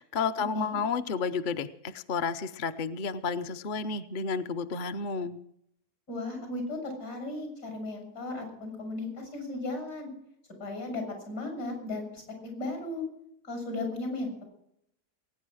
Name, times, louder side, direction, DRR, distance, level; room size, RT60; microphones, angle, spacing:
voice 1, 0.0-5.4, left 5 dB, 50° left, 9 dB, 0.6 m, -31 dB
voice 2, 6.1-10.1 10.6-13.0 13.4-14.4, left 2 dB, 80° left, 3 dB, 7.4 m, -36 dB
21.0 x 9.6 x 6.3 m, 0.74 s
omnidirectional pair, 1.7 m